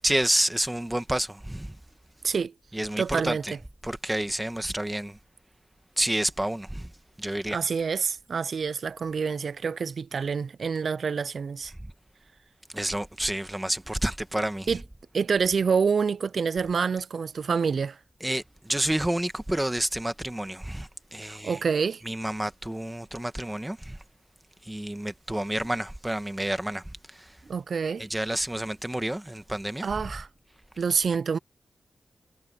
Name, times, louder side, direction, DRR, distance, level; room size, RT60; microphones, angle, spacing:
voice 1, 0.0-1.8 2.7-3.5 3.8-5.2 6.0-6.9 7.2-7.6 12.7-14.7 18.2-21.6 22.0-24.0 24.6-27.3 28.0-29.9, right 1 dB, 10° right, 1.5 m, -29 dB
voice 2, 3.0-3.6 7.5-11.7 14.7-14.8 15.1-18.0 21.3-22.0 27.5-28.1 29.8-30.3 30.8-31.4, right 5 dB, 65° right, 0.4 m, -27 dB
wide cardioid pair, 100°, 0 cm